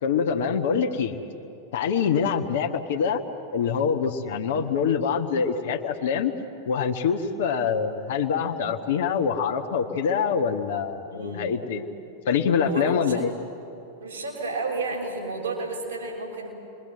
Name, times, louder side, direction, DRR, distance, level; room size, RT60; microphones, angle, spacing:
voice 1, 0.0-1.2 1.7-3.2 3.5-6.3 6.6-11.9 12.3-13.3, left 6 dB, 55° left, 4 dB, 1.5 m, -25 dB
voice 2, 11.1-11.4 12.6-13.2 14.0-16.5, right 3 dB, 70° right, -1 dB, 6.0 m, -31 dB
29.0 x 22.5 x 7.7 m, 2.9 s
figure-of-eight pair, 90°, 0 cm